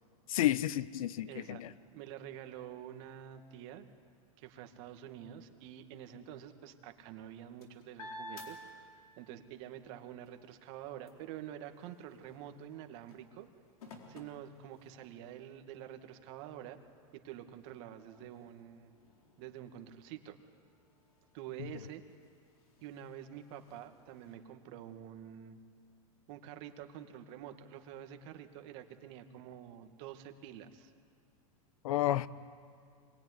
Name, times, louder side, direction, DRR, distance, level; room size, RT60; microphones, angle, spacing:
voice 1, 0.3-1.7 31.8-32.3, left 13 dB, 75° left, 1.0 m, -31 dB
voice 2, 1.3-1.6 1.9-3.9 4.4-8.6 9.2-13.5 14.1-16.8 17.1-18.9 19.4-20.4 21.3-22.0 22.8-25.6 26.3-30.9, right 10 dB, 50° right, 2.2 m, -48 dB
sound 1, 7.1-9.4 9.8-15.3 15.9-16.0 16.4-24.3, left 1 dB, 90° left, 4.3 m, -55 dB
25.5 x 20.5 x 9.8 m
supercardioid pair, 130°, 18 cm